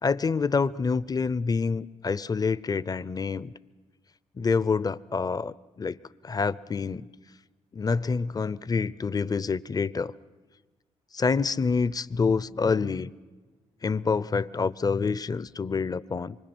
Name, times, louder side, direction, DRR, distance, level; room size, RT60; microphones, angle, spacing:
voice 1, 0.0-3.5 4.4-6.0 6.2-7.1 7.7-10.1 11.1-13.1 13.8-16.4, left 5 dB, 30° left, 0.6 m, -27 dB
25.5 x 24.0 x 6.1 m
supercardioid pair, 65°, 13 cm